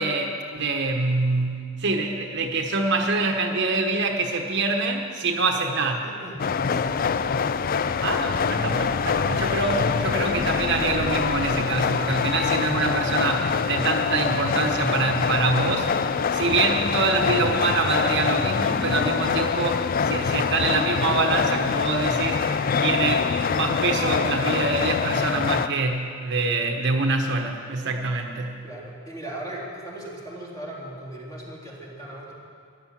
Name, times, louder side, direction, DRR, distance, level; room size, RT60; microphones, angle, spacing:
voice 1, 0.0-6.0 8.0-15.9 16.3-22.4 22.8-28.6, right 3 dB, 55° right, 3 dB, 1.1 m, -25 dB
voice 2, 5.5-7.5 16.7-16.9 28.6-32.3, right 1 dB, 20° left, -6 dB, 3.5 m, -38 dB
sound 1, 6.4-25.7, left 6 dB, 45° left, 0.4 m, -24 dB
14.5 x 11.0 x 7.4 m, 2.2 s
head